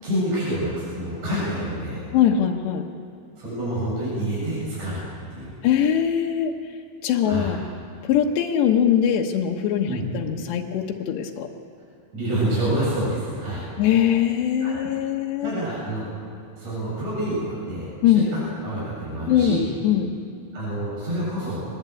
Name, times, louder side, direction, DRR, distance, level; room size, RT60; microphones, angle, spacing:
voice 1, 0.0-2.0 3.4-5.0 5.3-5.5 7.3-7.5 9.9-10.0 12.1-13.6 14.6-14.8 15.4-16.0 16.6-18.3 18.6-19.7 20.5-21.7, right 1 dB, 40° right, -8 dB, 8.8 m, -27 dB
voice 2, 2.1-2.8 5.6-6.5 7.0-7.6 8.0-11.5 13.8-15.5 18.0-18.3 19.3-19.6 19.8-20.1, left 9 dB, 85° left, 1 dB, 3.4 m, -21 dB
23.5 x 21.0 x 8.4 m, 2.6 s
omnidirectional pair, 4.8 m